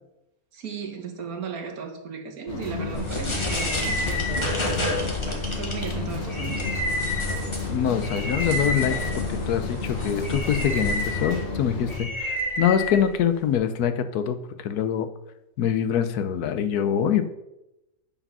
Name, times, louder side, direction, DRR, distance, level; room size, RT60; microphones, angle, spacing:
voice 1, 0.5-6.8, right 5 dB, 70° right, 1.6 m, -36 dB
sound 1, 2.5-12.0, left 4 dB, 50° left, 1.8 m, -32 dB
sound 2, 2.9-13.5, left 1 dB, 20° left, 1.3 m, -29 dB
voice 2, 7.7-15.1 15.6-17.2, left 8 dB, 85° left, 1.2 m, -24 dB
8.8 x 4.9 x 5.6 m
omnidirectional pair, 1.6 m